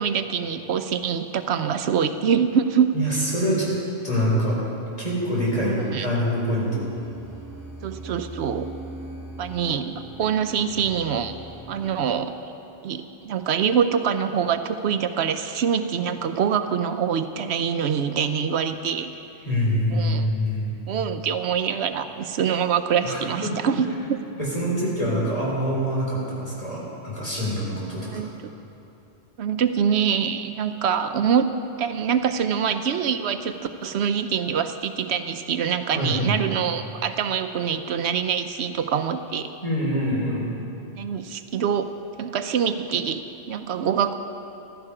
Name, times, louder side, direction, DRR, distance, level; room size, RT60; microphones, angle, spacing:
voice 1, 0.0-2.9 5.5-6.1 7.8-8.7 9.4-11.3 11.7-12.3 12.8-19.2 19.9-20.3 20.9-24.2 28.0-28.3 29.4-39.6 40.9-44.1, right 7 dB, 80° right, 9 dB, 0.9 m, -25 dB
voice 2, 2.9-3.8 4.0-4.6 5.0-6.8 19.4-20.7 23.0-23.5 24.0-28.1 35.9-36.4 39.6-40.5, equal, 35° left, -6 dB, 4.3 m, -25 dB
sound 1, 6.7-12.0, right 2 dB, 20° right, 1.7 m, -40 dB
15.5 x 13.0 x 4.9 m, 2.7 s
omnidirectional pair, 1.1 m